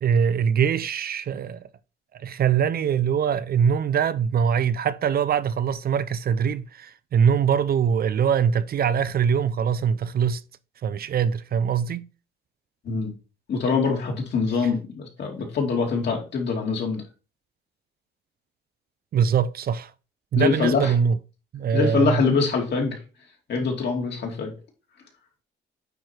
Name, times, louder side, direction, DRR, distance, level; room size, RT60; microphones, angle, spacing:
voice 1, 0.0-1.6 2.1-10.4 10.8-12.0 19.1-19.9 20.3-21.1 21.5-22.2, right 7 dB, 50° right, 0.5 m, -23 dB
voice 2, 13.5-17.0 20.3-20.9 21.7-23.0 23.5-24.5, left 4 dB, 60° left, 2.6 m, -24 dB
9.2 x 3.1 x 4.4 m
cardioid pair, 90°, 20 cm